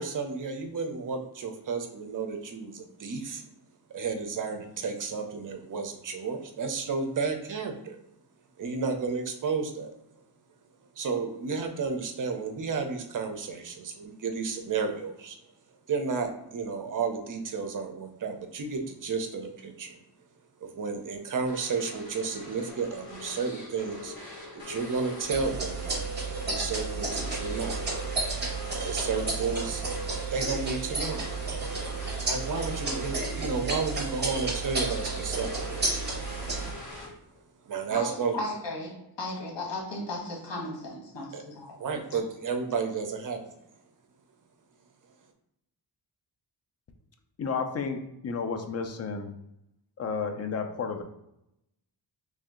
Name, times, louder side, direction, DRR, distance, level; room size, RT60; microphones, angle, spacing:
voice 1, 0.0-3.4 3.9-8.0 8.6-9.9 11.0-15.4 15.9-20.0 20.6-24.1 24.5-25.9 26.4-27.8 28.8-29.8 30.3-31.2 32.2-36.0 37.6-38.4 41.3-41.4 41.8-43.4, right 5 dB, 45° right, 5 dB, 0.6 m, -32 dB
sound 1, 21.5-37.4, left 2 dB, 55° left, 1.4 m, -44 dB
sound 2, 25.3-36.7, right 3 dB, 25° right, 1.2 m, -32 dB
voice 2, 37.9-41.7 42.1-42.2, left 2 dB, 85° left, -1 dB, 1.3 m, -36 dB
voice 3, 47.4-49.3 50.0-51.0, left 5 dB, 35° left, 6 dB, 0.4 m, -32 dB
3.2 x 2.7 x 3.6 m, 0.83 s
wide cardioid pair, 125°, 43 cm